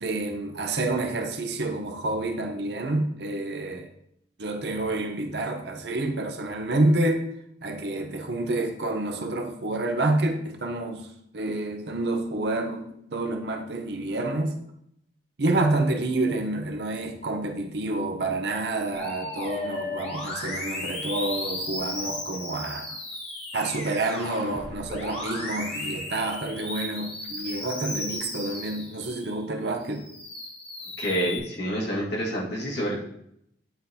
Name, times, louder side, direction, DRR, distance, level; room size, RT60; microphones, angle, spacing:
voice 1, 0.0-3.9 4.4-7.3 7.6-11.1 11.3-14.6 15.4-23.0 23.5-30.1, right 2 dB, 60° right, 0.7 m, -28 dB
Musical instrument, 18.9-29.4 29.8-31.4, left 2 dB, 30° left, 1.4 m, -35 dB
voice 2, 31.0-33.0, equal, 65° left, 1.8 m, -28 dB
10.0 x 3.9 x 2.8 m
head